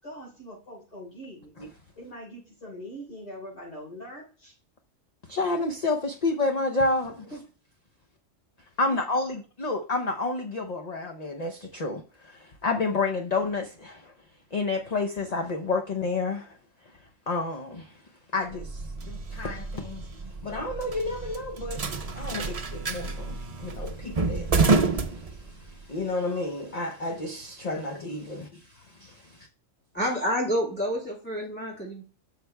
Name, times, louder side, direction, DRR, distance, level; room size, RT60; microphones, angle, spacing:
voice 1, 0.0-1.5 1.9-4.5 7.3-7.4, equal, 65° left, 5.0 m, -42 dB
voice 2, 5.3-7.1 8.8-14.1 14.5-16.6 17.3-17.9 18.3-20.1 20.4-21.8 22.2-28.4 28.9-29.5, left 3 dB, 40° left, 0.7 m, -30 dB
sound 1, 18.5-25.8, right 4 dB, 35° right, 0.7 m, -29 dB
voice 3, 29.9-32.0, equal, 10° left, 1.5 m, -28 dB
12.0 x 6.7 x 2.2 m
omnidirectional pair, 1.3 m